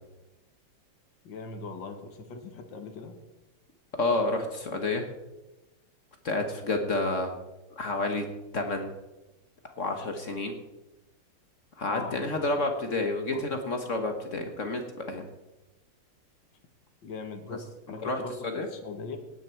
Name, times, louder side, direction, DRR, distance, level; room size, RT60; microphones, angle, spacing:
voice 1, 1.2-3.2 11.8-12.6 13.3-13.5 17.0-17.6 17.9-19.2, left 4 dB, 80° left, 5 dB, 2.1 m, -40 dB
voice 2, 4.0-5.0 6.2-7.4 7.7-8.3 8.5-8.9 9.8-10.5 11.8-15.2 17.5-17.6 18.0-18.7, left 2 dB, 45° left, 5 dB, 1.5 m, -29 dB
17.5 x 9.7 x 4.5 m, 1.0 s
omnidirectional pair, 2.0 m